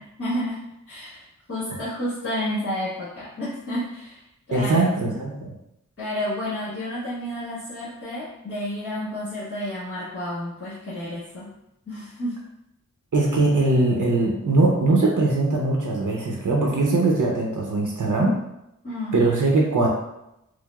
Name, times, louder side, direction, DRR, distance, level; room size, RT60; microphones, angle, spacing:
voice 1, 0.2-4.2 4.5-4.9 6.0-11.5 11.9-12.4 18.8-19.2, left 1 dB, 45° left, -11 dB, 1.3 m, -31 dB
voice 2, 4.5-5.5 13.1-18.4 19.1-19.9, right 2 dB, 75° right, -1 dB, 0.7 m, -21 dB
4.6 x 2.0 x 2.3 m, 0.85 s
wide cardioid pair, 75°, 31 cm